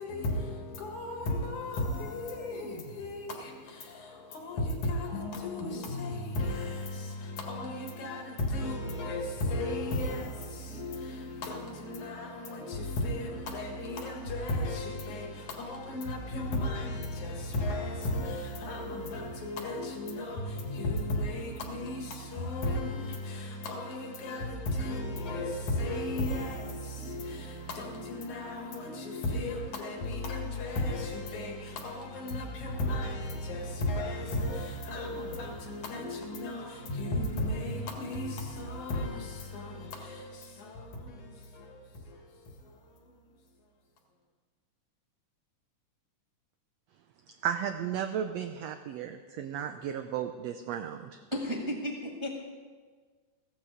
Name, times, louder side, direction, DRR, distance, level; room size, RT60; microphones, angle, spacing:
voice 1, 0.0-43.4, left 1 dB, 70° left, 3.1 m, -35 dB
voice 2, 47.4-51.2, right 9 dB, 80° right, 1.5 m, -34 dB
voice 3, 51.3-52.3, equal, 10° right, 1.3 m, -33 dB
15.5 x 14.0 x 5.0 m
omnidirectional pair, 3.6 m